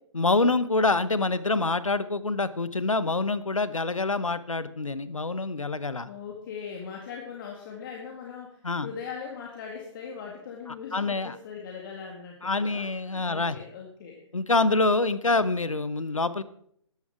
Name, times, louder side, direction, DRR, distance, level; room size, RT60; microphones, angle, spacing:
voice 1, 0.1-6.1 8.6-8.9 10.9-11.4 12.4-13.6 14.3-16.4, left 3 dB, 85° left, 14 dB, 0.9 m, -26 dB
voice 2, 6.0-14.2 15.3-15.5, left 6 dB, 40° left, 0 dB, 2.2 m, -40 dB
13.5 x 11.0 x 4.8 m, 0.67 s
figure-of-eight pair, 130°, 16 cm